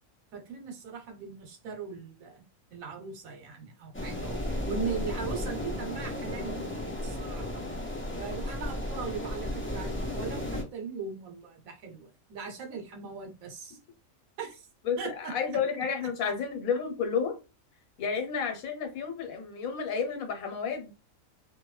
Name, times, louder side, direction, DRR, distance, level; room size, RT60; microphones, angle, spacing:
voice 1, 0.3-2.4 2.7-4.4 4.7-7.5 8.2-13.8 14.4-14.7 15.0-15.3, right 5 dB, 80° right, 1.2 m, -39 dB
sound 1, 3.9-10.6, left 1 dB, 15° left, 0.4 m, -34 dB
voice 2, 14.8-17.4 18.0-20.9, left 6 dB, 90° left, 1.2 m, -31 dB
2.5 x 2.2 x 3.1 m
omnidirectional pair, 1.4 m